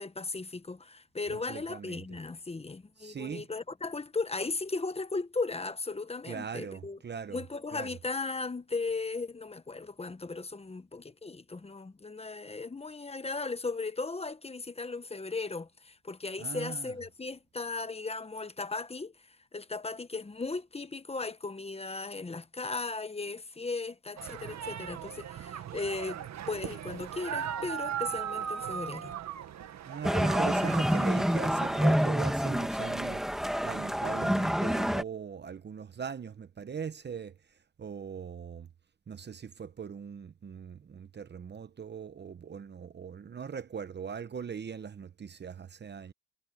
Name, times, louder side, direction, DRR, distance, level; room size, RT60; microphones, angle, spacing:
voice 1, 0.0-7.0 7.3-19.1 19.5-26.2 26.5-29.1, left 3 dB, 20° left, 1.2 m, -36 dB
voice 2, 1.3-2.0 3.0-3.5 6.3-7.4 7.7-7.9 16.4-16.9 29.9-33.2 33.6-37.3 37.8-38.7 39.1-46.1, right 7 dB, 35° right, 0.9 m, -40 dB
sound 1, 24.2-32.1, right 9 dB, 65° right, 1.7 m, -38 dB
sound 2, 30.0-35.0, equal, ahead, 1.5 m, -27 dB
cardioid pair, 90°, 30 cm